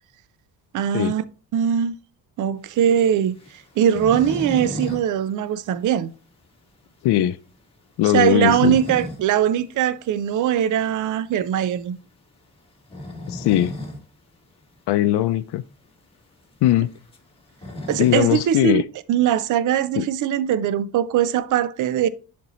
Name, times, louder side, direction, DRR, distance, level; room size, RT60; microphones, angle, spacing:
voice 1, 0.7-1.2 1.5-1.9 2.4-3.4 3.8-6.1 8.1-12.0 17.9-18.8 19.1-22.1, right 10 dB, 50° right, 0.5 m, -21 dB
sound 1, 2.7-5.1 5.3-5.4 5.8-5.9 6.4-6.5 8.1-9.3 9.7-9.8 11.3-11.6 12.7-14.0 14.4-14.5 14.7-14.8 15.6-15.7 15.9-18.5, left 1 dB, 15° left, 1.6 m, -34 dB
voice 2, 7.0-7.4 8.0-8.8 13.3-13.7 14.9-15.6 16.6-16.9 18.0-18.8 20.0-20.1, left 14 dB, 85° left, 0.5 m, -19 dB
11.0 x 4.3 x 3.0 m
cardioid pair, 165°, 39 cm